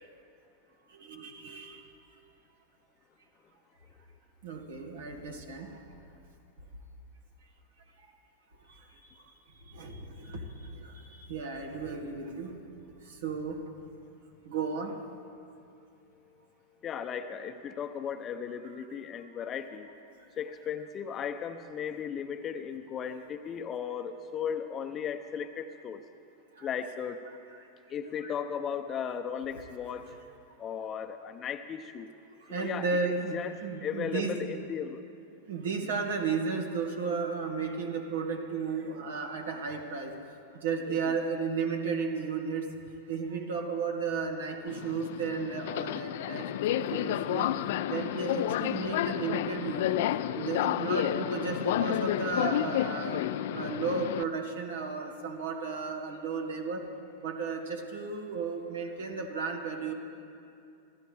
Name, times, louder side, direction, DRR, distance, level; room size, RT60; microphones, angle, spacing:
voice 1, 1.1-1.8 4.4-5.7 9.7-10.4 11.1-12.6 13.2-13.6 14.5-14.9 26.6-26.7 28.2-28.3 32.5-34.4 35.5-40.1 40.6-42.7 43.1-47.5 47.9-50.0 50.4-53.3 53.5-56.8 57.2-59.9, right 5 dB, 70° right, 4 dB, 2.0 m, -34 dB
voice 2, 16.8-19.9 20.4-26.0 26.6-27.2 27.9-32.1 32.5-35.0 40.9-41.1 45.8-46.0 50.1-50.9, left 7 dB, 30° left, 8 dB, 0.7 m, -36 dB
Subway metro underground, 44.7-54.2, left 12 dB, 60° left, 0.5 m, -31 dB
27.0 x 14.5 x 3.5 m, 2.6 s
figure-of-eight pair, 95°, 0 cm